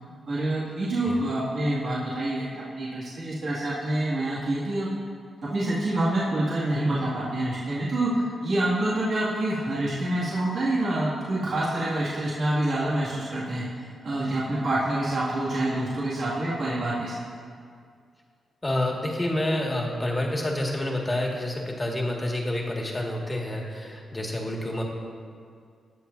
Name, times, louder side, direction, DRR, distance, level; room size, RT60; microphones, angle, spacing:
voice 1, 0.3-4.9 5.4-13.6 14.0-17.1, right 1 dB, 60° right, -8 dB, 2.2 m, -27 dB
voice 2, 18.6-24.8, left 1 dB, 20° left, -1 dB, 1.9 m, -28 dB
19.5 x 7.0 x 2.7 m, 2.2 s
cardioid pair, 75°, 0 cm